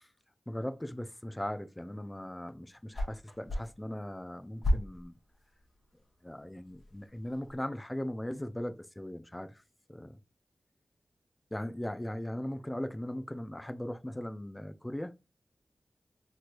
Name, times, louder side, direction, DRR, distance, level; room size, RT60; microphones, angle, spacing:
voice 1, 0.5-5.2 6.2-9.5 9.9-10.2 11.5-15.1, left 1 dB, 15° left, 0.4 m, -38 dB
sound 1, 2.6-7.6, equal, 55° left, 1.0 m, -37 dB
3.1 x 3.0 x 2.5 m
cardioid pair, 45°, 0 cm